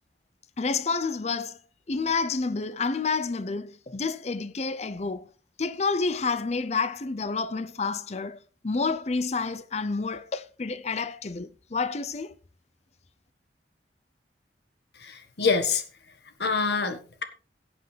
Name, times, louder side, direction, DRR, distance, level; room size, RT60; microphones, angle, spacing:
voice 1, 0.6-1.6 1.9-5.3 5.6-8.4 8.6-12.4, left 4 dB, 40° left, 0.6 m, -29 dB
voice 2, 15.0-15.8 16.4-17.2, left 4 dB, 70° left, 1.6 m, -26 dB
17.5 x 8.0 x 3.4 m
head